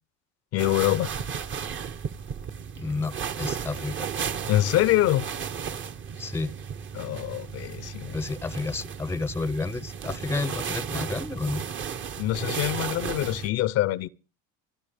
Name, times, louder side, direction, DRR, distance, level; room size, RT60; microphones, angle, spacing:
voice 1, 0.5-1.1 4.5-5.3 6.9-8.1 12.2-14.1, left 15 dB, 55° left, 0.7 m, -25 dB
sound 1, 0.6-13.5, right 7 dB, 40° right, 1.2 m, -34 dB
voice 2, 2.8-4.1 6.2-6.5 8.1-11.6, left 3 dB, 10° left, 0.7 m, -31 dB
29.5 x 11.5 x 3.5 m
supercardioid pair, 110°, 29 cm